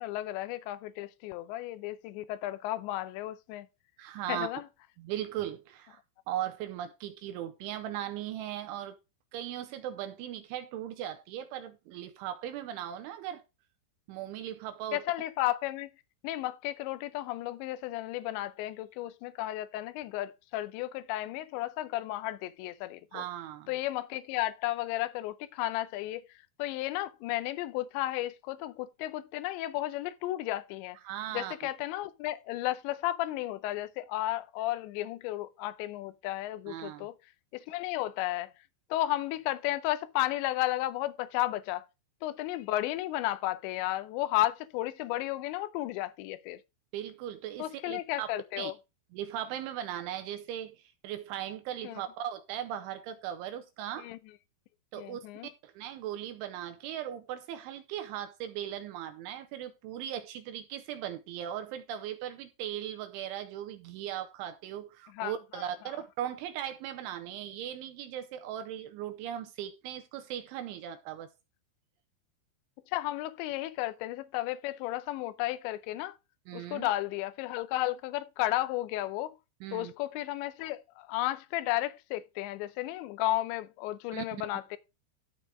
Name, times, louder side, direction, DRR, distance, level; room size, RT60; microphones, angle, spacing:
voice 1, 0.0-3.7 4.3-4.6 14.9-15.9 16.2-23.2 23.7-26.2 26.6-31.0 31.3-37.1 37.5-38.5 38.9-41.9 42.2-46.6 47.6-48.7 51.8-52.0 54.0-54.2 55.0-55.5 65.1-65.6 72.9-76.2 76.5-79.3 79.7-84.8, left 15 dB, 85° left, 2.5 m, -33 dB
voice 2, 4.0-4.5 5.0-6.0 6.3-9.0 9.3-13.4 14.1-15.0 23.1-23.7 31.0-31.5 36.7-37.1 46.9-48.3 48.6-48.7 49.1-54.1 54.9-55.3 55.6-71.3 76.5-76.9 79.6-79.9 84.1-84.3, right 11 dB, 85° right, 2.9 m, -38 dB
13.5 x 4.7 x 4.7 m
omnidirectional pair, 6.0 m